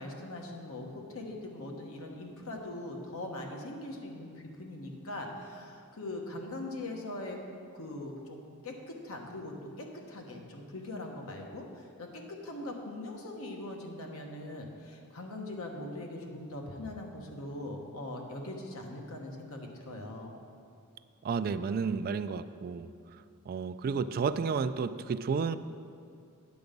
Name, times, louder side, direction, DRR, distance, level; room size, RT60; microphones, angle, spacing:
voice 1, 0.0-7.4 7.7-20.3, left 1 dB, 70° left, 1 dB, 1.3 m, -41 dB
voice 2, 21.2-22.9 23.5-25.6, right 5 dB, 40° right, 13 dB, 0.3 m, -31 dB
9.5 x 6.9 x 5.2 m, 2.4 s
head